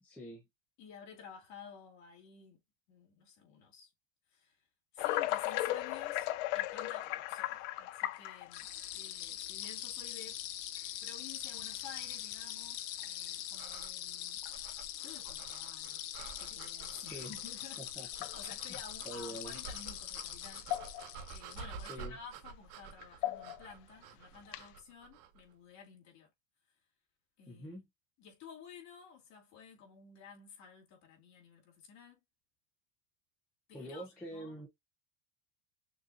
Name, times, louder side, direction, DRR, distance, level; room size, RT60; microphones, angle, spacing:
voice 1, 0.0-0.4 17.0-17.3 18.0-18.3 19.0-19.6 21.9-22.1 27.5-27.8 33.7-34.7, equal, 5° left, 0.5 m, -45 dB
voice 2, 0.8-2.6 2.9-3.9 4.3-4.6 4.9-10.4 11.0-17.8 18.3-20.7 21.3-26.3 27.4-27.8 28.2-32.2 33.7-34.6, left 6 dB, 35° left, 2.4 m, -53 dB
sound 1, 5.0-8.8 9.6-9.7 10.8-10.9 11.6-11.9 12.3-12.4 12.9-13.1 14.4-14.5 17.3-17.4 18.1-18.8 20.2-20.3 20.6-21.2 21.6-21.7 23.0-23.7 24.4-24.8, left 15 dB, 50° left, 0.5 m, -36 dB
sound 2, 8.5-21.9, left 12 dB, 75° left, 1.1 m, -43 dB
sound 3, 13.5-25.4, right 6 dB, 60° right, 1.1 m, -51 dB
6.4 x 2.7 x 2.5 m
supercardioid pair, 160°, 49 cm